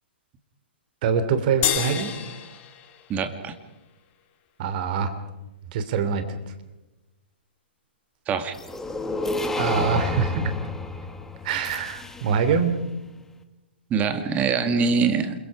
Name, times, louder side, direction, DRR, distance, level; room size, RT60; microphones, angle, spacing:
voice 1, 1.0-2.1 4.6-5.1 5.7-6.2 9.6-10.5 11.4-12.8, right 6 dB, 50° right, 10 dB, 3.1 m, -24 dB
sound 1, 1.6-4.2, left 11 dB, 30° left, 2.8 m, -30 dB
voice 2, 3.1-3.6 8.3-8.5 13.9-15.3, right 5 dB, 25° right, 9 dB, 2.1 m, -23 dB
sound 2, 8.5-12.6, left 2 dB, 5° left, 1.7 m, -30 dB
29.0 x 22.5 x 4.9 m, 1.0 s
hypercardioid pair, 125°, 6 cm